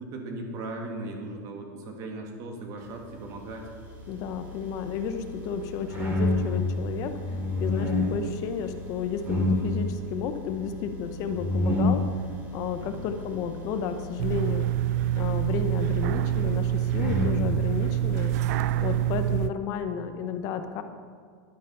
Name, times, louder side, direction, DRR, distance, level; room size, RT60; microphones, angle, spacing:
voice 1, 0.0-3.7 7.2-7.4 12.8-13.1 18.7-19.1, right 2 dB, 35° right, 2 dB, 1.9 m, -38 dB
sound 1, 3.6-19.0, left 1 dB, 15° right, 2.8 m, -31 dB
voice 2, 4.1-12.0 12.5-14.7 15.1-18.3 18.8-20.8, left 7 dB, 35° left, 8 dB, 0.9 m, -32 dB
sound 2, 14.2-19.5, right 13 dB, 55° right, 0.4 m, -26 dB
11.0 x 10.5 x 5.6 m, 2.1 s
supercardioid pair, 170°, 10 cm